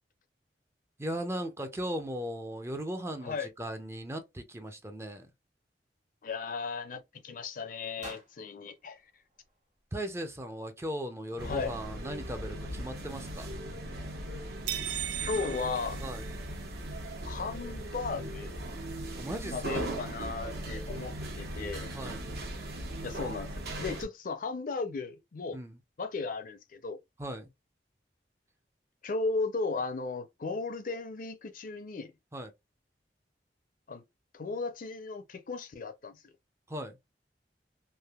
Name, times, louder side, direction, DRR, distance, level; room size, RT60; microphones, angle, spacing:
voice 1, 1.0-5.3 9.9-13.5 16.0-16.2 19.2-19.8 21.9-22.2 25.5-25.8 27.2-27.5 32.3-32.5 36.7-37.0, right 1 dB, 15° right, 0.4 m, -37 dB
voice 2, 6.2-9.0 11.4-11.7 15.2-16.0 17.2-18.6 19.5-21.9 23.0-23.5 23.8-25.6 26.0-27.0 29.0-32.1 33.9-34.0 34.3-36.2, left 4 dB, 50° left, 0.5 m, -35 dB
sound 1, 8.0-10.1, right 1 dB, 45° right, 1.0 m, -52 dB
sound 2, 11.4-24.0, right 1 dB, 65° right, 1.0 m, -39 dB
sound 3, 14.7-16.8, right 12 dB, 90° right, 0.4 m, -37 dB
3.3 x 2.5 x 2.3 m
head